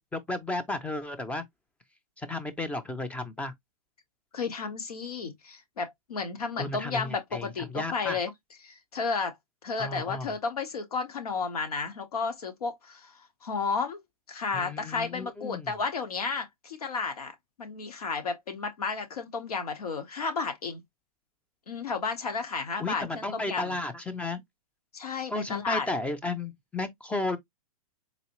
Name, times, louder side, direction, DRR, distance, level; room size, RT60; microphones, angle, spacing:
voice 1, 0.0-1.5 2.2-3.5 6.6-7.5 7.7-8.2 9.8-10.3 14.5-15.7 22.8-24.4 25.3-27.4, left 2 dB, 5° left, 0.5 m, -33 dB
voice 2, 4.3-8.3 8.6-9.4 9.6-14.0 14.3-20.8 21.7-23.8 24.9-25.9, left 4 dB, 85° left, 1.3 m, -32 dB
4.0 x 2.7 x 3.0 m
hypercardioid pair, 125°, 19 cm